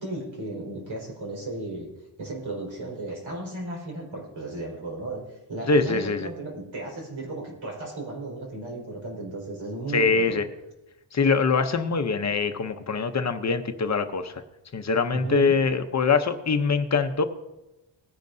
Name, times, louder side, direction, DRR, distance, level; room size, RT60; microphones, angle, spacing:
voice 1, 0.0-1.9 2.2-10.4 15.1-15.6, right 2 dB, 85° right, -1 dB, 4.6 m, -35 dB
voice 2, 5.7-6.3 9.9-10.5 11.1-14.3 14.7-17.2, left 4 dB, 35° left, 8 dB, 0.7 m, -23 dB
19.5 x 10.5 x 2.7 m, 0.99 s
wide cardioid pair, 140°, 45 cm